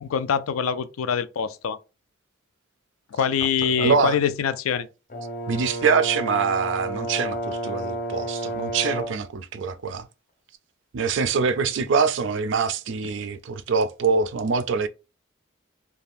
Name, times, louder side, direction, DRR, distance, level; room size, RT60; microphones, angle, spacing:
voice 1, 0.0-1.8 3.1-4.9, left 7 dB, 90° left, 0.4 m, -24 dB
voice 2, 3.7-4.2 5.5-10.1 10.9-14.9, right 5 dB, 60° right, 0.3 m, -24 dB
Brass instrument, 5.1-9.3, right 1 dB, 40° left, 0.5 m, -31 dB
2.5 x 2.2 x 3.4 m
head